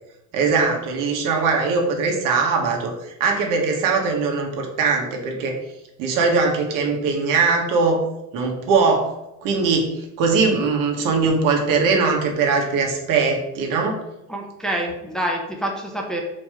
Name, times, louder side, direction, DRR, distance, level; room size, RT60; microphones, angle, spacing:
voice 1, 0.3-5.6 6.0-8.0 8.3-9.1 9.4-14.0, right 4 dB, 75° right, 1 dB, 1.9 m, -21 dB
voice 2, 14.3-16.2, right 1 dB, ahead, -1 dB, 0.9 m, -27 dB
6.7 x 5.1 x 5.2 m, 0.90 s
cardioid pair, 175°, 33 cm